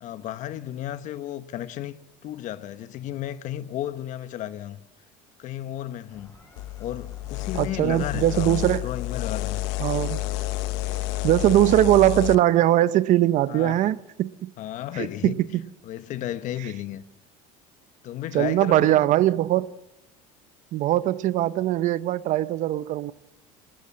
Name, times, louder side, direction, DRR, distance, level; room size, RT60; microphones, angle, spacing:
voice 1, 0.0-2.0 2.2-4.8 5.4-6.3 6.8-9.6 13.5-14.0 14.6-15.4 15.8-17.0 18.0-19.1, left 12 dB, 50° left, 1.1 m, -33 dB
sound 1, 6.1-11.7, left 3 dB, 15° left, 7.6 m, -51 dB
sound 2, 6.6-12.4, left 18 dB, 75° left, 0.9 m, -30 dB
voice 2, 7.5-8.8 9.8-10.2 11.2-14.5 15.0-15.6 18.3-19.7 20.7-23.1, right 14 dB, 50° right, 0.7 m, -21 dB
21.0 x 18.5 x 7.4 m
supercardioid pair, 125°, 17 cm